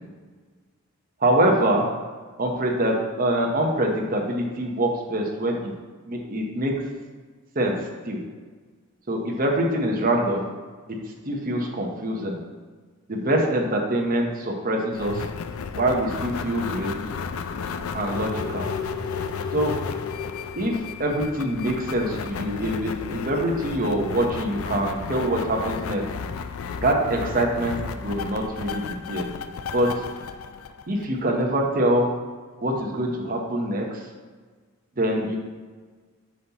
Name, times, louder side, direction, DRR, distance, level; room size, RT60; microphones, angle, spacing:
voice 1, 1.2-1.9 2.4-5.7 6.0-6.7 7.5-7.8 8.1-8.2 9.1-10.5 10.9-11.0 11.2-12.4 13.1-15.2 15.7-17.0 17.9-18.7 19.5-19.7 20.6-26.0 26.8-29.3 29.7-30.0 30.9-32.1 32.6-34.0 35.0-35.4, right 1 dB, 40° right, 0 dB, 0.9 m, -24 dB
sound 1, 14.9-31.4, left 5 dB, 70° left, 0.4 m, -33 dB
7.3 x 5.7 x 2.9 m, 1.4 s
head